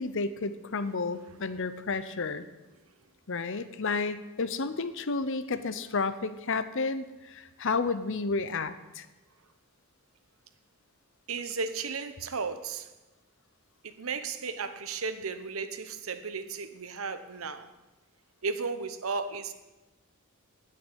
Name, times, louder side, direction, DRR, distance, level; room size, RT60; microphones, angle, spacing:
voice 1, 0.0-2.5 3.3-9.1, left 4 dB, 60° left, 13 dB, 0.8 m, -31 dB
voice 2, 11.3-12.9 13.8-17.7 18.4-19.5, right 4 dB, 75° right, 11 dB, 1.0 m, -34 dB
9.4 x 9.4 x 8.6 m, 1.1 s
head